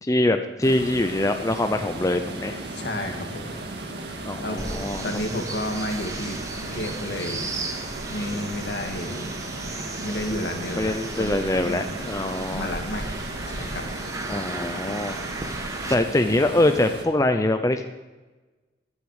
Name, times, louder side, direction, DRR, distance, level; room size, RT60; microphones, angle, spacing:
voice 1, 0.0-2.6 4.2-5.0 10.8-12.7 14.3-15.2 15.9-17.9, left 1 dB, 20° left, 7 dB, 0.6 m, -23 dB
sound 1, 0.6-17.1, right 2 dB, 70° right, 1.9 m, -36 dB
voice 2, 2.7-3.6 4.4-4.6 5.0-7.5 8.1-9.3 10.0-11.8 12.5-13.0 13.5-13.8, left 1 dB, 70° left, 3 dB, 2.1 m, -31 dB
sound 2, 4.6-15.9, right 2 dB, 20° right, 1.3 m, -35 dB
14.5 x 10.5 x 4.9 m, 1.2 s
head